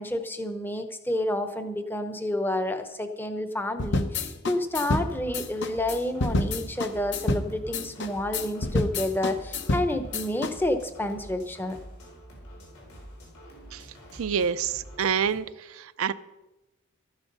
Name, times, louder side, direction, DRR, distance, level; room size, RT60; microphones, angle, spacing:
voice 1, 0.0-11.8, left 1 dB, 10° left, 8 dB, 0.8 m, -29 dB
sound 1, 3.8-10.5, left 2 dB, 50° left, 0.8 m, -28 dB
sound 2, 4.7-15.4, equal, 85° left, 4.6 m, -47 dB
voice 2, 14.2-15.5 15.8-16.1, right 7 dB, 70° right, 13 dB, 0.4 m, -27 dB
13.0 x 10.5 x 5.4 m, 1.0 s
head